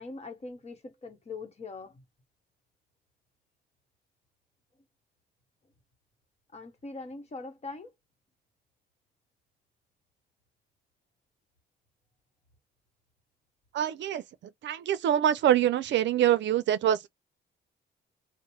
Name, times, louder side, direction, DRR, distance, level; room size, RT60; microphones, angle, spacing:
voice 1, 0.0-2.0 6.5-7.9, left 3 dB, 35° left, 1.1 m, -42 dB
voice 2, 13.7-14.2 14.6-17.1, right 11 dB, 65° right, 0.5 m, -25 dB
2.7 x 2.1 x 3.1 m
cardioid pair, 90°, 20 cm